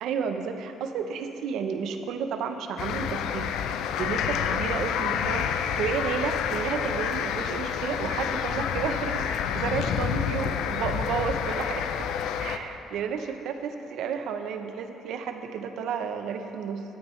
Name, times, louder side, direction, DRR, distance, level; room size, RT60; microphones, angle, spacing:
voice 1, 0.0-12.1 12.4-16.8, right 6 dB, 75° right, 7 dB, 0.7 m, -32 dB
sound 1, 2.8-12.6, left 8 dB, 80° left, 0.4 m, -29 dB
14.0 x 9.4 x 3.2 m, 2.9 s
cardioid pair, 105°, 0 cm